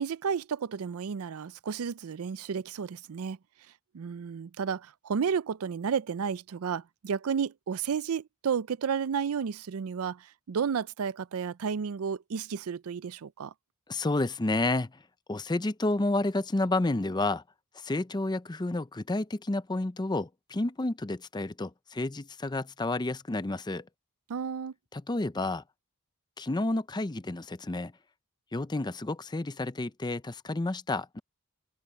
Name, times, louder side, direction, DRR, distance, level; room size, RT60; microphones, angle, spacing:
voice 1, 0.0-3.4 3.9-13.5 24.3-24.7, right 6 dB, 70° right, 0.4 m, -32 dB
voice 2, 13.9-15.0 15.3-17.4 17.7-23.9 24.9-25.6 26.4-27.9 28.5-31.2, left 2 dB, 20° left, 0.5 m, -30 dB
head